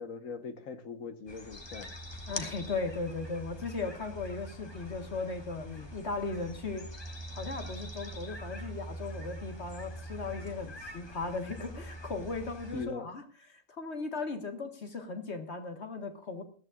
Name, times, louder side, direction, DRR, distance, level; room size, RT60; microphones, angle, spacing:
voice 1, 0.0-1.9 5.6-5.9 12.7-13.1, left 5 dB, 75° left, 8 dB, 1.6 m, -41 dB
sound 1, 1.3-12.9, equal, 20° left, 1.3 m, -44 dB
voice 2, 2.3-7.0 7.3-13.2 13.5-16.4, left 3 dB, 55° left, 5 dB, 1.8 m, -37 dB
20.5 x 14.0 x 2.5 m, 0.41 s
omnidirectional pair, 1.4 m